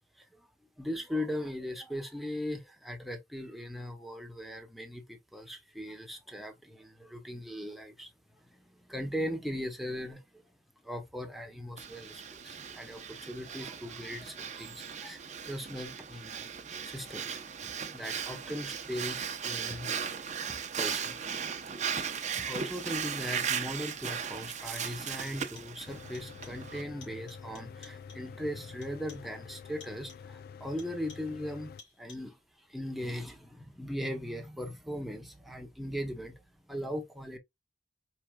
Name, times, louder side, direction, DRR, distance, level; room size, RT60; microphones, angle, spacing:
voice 1, 0.2-0.5 0.8-8.1 8.4-10.4 10.8-16.5 16.8-19.9 20.5-21.2 22.4-37.4, equal, ahead, 1.1 m, -39 dB
Breathing, 11.8-26.8, right 7 dB, 40° right, 0.8 m, -37 dB
sound 1, 23.9-24.2 24.5-25.0 25.3-25.8 26.1-26.7 27.0-28.4 28.8-29.4 29.8-30.4 30.8-31.4 31.8-32.4, left 5 dB, 80° left, 3.3 m, -56 dB
Mechanical fan, 25.9-31.8, left 6 dB, 55° left, 0.4 m, -48 dB
4.6 x 4.5 x 2.3 m
head